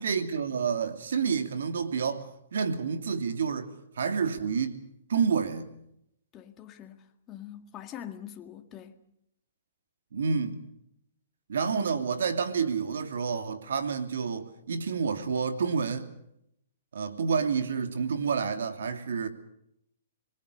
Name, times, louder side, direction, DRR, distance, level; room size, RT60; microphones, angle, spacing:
voice 1, 0.0-4.8 5.1-5.8 10.1-10.7 11.5-16.1 16.9-19.3, right 6 dB, 75° right, 2.8 m, -29 dB
voice 2, 6.3-9.0 11.7-11.8, left 11 dB, 25° left, 2.0 m, -44 dB
26.5 x 20.5 x 6.7 m
hypercardioid pair, 135°, 0 cm